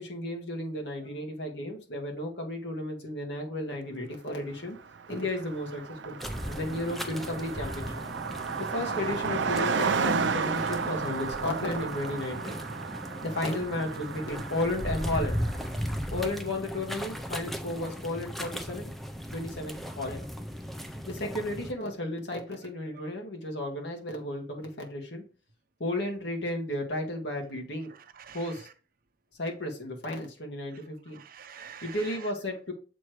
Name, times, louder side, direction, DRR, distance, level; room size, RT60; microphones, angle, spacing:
voice 1, 0.0-4.8 5.1-6.2 6.4-7.9 8.6-12.6 13.2-15.4 16.1-18.9 19.3-20.2 21.1-25.2 25.8-27.9 28.3-28.7 29.4-31.2 31.8-32.7, left 1 dB, 75° left, 1.8 m, -33 dB
Car passing by, 4.7-4.8 5.0-16.0, right 5 dB, 90° right, 0.5 m, -33 dB
sound 1, 6.2-21.7, equal, ahead, 0.5 m, -37 dB
voice 2, 27.9-28.6 31.1-32.3, right 7 dB, 55° right, 0.7 m, -47 dB
7.2 x 3.2 x 4.6 m
head